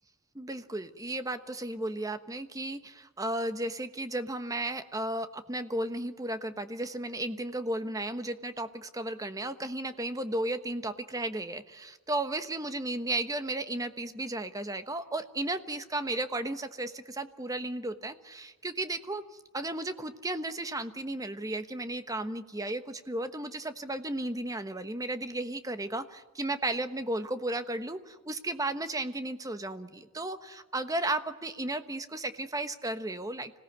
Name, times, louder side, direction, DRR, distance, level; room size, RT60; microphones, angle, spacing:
voice 1, 0.3-19.2 19.5-33.5, right 2 dB, 15° right, 10 dB, 1.2 m, -34 dB
26.0 x 17.5 x 9.3 m, 1.3 s
head